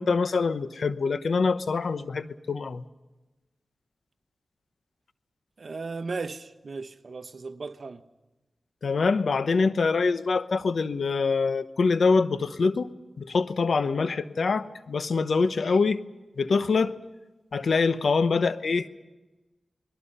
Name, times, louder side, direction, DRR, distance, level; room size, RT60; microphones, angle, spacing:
voice 1, 0.0-2.8 8.8-12.9 13.2-16.0 16.4-17.0 17.5-18.9, left 4 dB, 75° left, 1.0 m, -24 dB
voice 2, 5.6-8.0, right 4 dB, 65° right, 1.1 m, -36 dB
29.5 x 21.0 x 5.6 m
cardioid pair, 45°, 0 cm